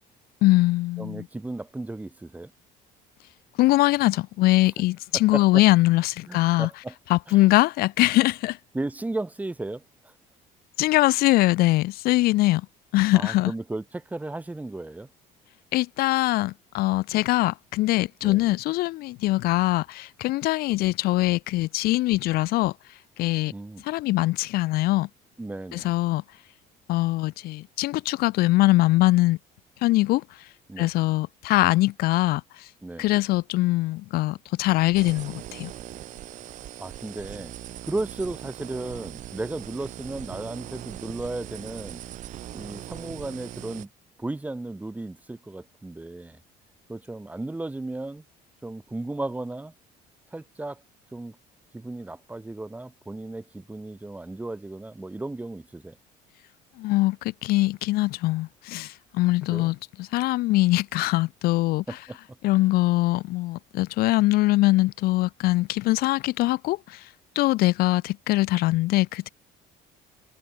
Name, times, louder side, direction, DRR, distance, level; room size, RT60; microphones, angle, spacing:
voice 1, 0.4-1.2 3.6-6.7 7.1-8.6 10.8-12.6 12.9-13.5 15.7-22.7 23.2-23.5 23.8-25.1 25.7-26.2 26.9-29.4 29.8-30.2 30.8-32.7 33.0-35.7 56.8-61.8 62.4-67.0 67.3-69.3, left 18 dB, 70° left, 1.1 m, -22 dB
voice 2, 1.0-2.5 5.1-5.7 6.3-6.9 7.3-7.4 8.7-10.1 13.1-15.1 18.2-18.5 23.5-23.8 25.4-25.9 30.7-30.9 32.8-33.1 36.8-37.5 37.8-42.0 42.5-43.9 44.2-46.4 46.9-48.2 48.6-49.7 50.3-50.8 51.1-51.4 51.7-56.0 59.5-59.7 61.9-62.2, right 2 dB, 10° right, 4.5 m, -35 dB
sound 1, 34.9-43.9, right 13 dB, 50° right, 0.9 m, -40 dB
cardioid pair, 140°, 16 cm